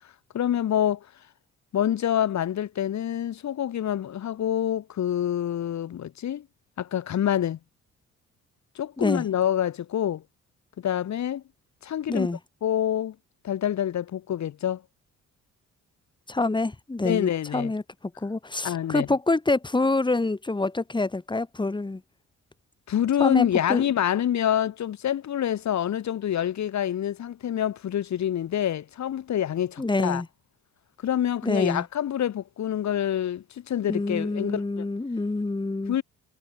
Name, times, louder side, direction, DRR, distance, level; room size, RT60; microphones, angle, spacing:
voice 1, 0.3-1.1 1.7-6.4 6.8-7.6 8.7-10.2 10.8-11.4 11.8-12.3 12.6-13.1 13.4-14.8 17.0-17.7 18.6-19.1 22.9-30.2 31.0-34.9 35.9-36.0, left 10 dB, 65° left, 4.7 m, -26 dB
voice 2, 12.1-12.4 16.3-17.8 18.2-22.0 23.2-23.9 29.8-30.3 31.4-31.8 33.9-36.0, left 2 dB, 15° left, 2.2 m, -26 dB
cardioid pair, 90°, 30 cm